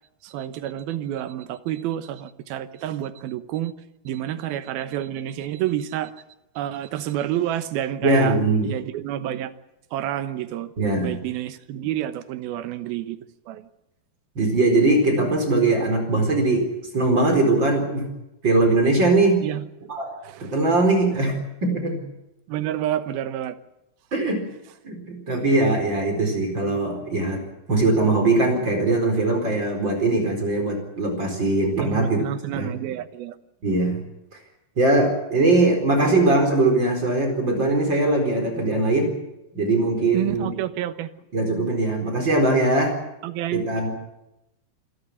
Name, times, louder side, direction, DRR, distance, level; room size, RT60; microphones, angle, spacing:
voice 1, 0.2-3.7 4.0-6.1 6.6-8.4 8.6-9.5 9.9-13.2 13.5-13.7 19.4-19.6 20.2-20.5 22.5-23.6 31.8-33.4 36.0-36.2 40.1-41.1 43.2-43.6, right 12 dB, 80° right, 12 dB, 2.9 m, -29 dB
voice 2, 8.0-8.7 10.8-11.2 14.3-18.0 18.4-19.4 19.9-20.1 20.5-21.4 21.6-22.0 24.1-24.4 24.8-27.4 27.7-32.2 32.5-32.7 33.6-34.0 34.8-39.2 39.5-40.5 41.3-43.0 43.5-43.9, right 2 dB, 30° right, 3 dB, 4.8 m, -21 dB
26.5 x 13.0 x 9.9 m, 0.89 s
omnidirectional pair, 4.3 m